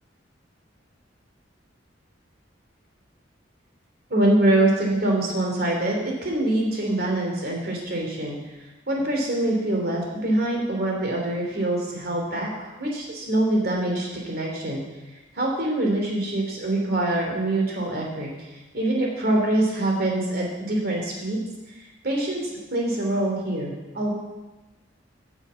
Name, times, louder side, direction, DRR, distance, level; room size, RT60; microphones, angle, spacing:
voice 1, 4.1-8.4 8.9-14.8 15.3-18.5 18.7-21.4 22.0-24.1, right 1 dB, 55° right, 0 dB, 3.1 m, -24 dB
10.0 x 7.2 x 7.7 m, 1.1 s
head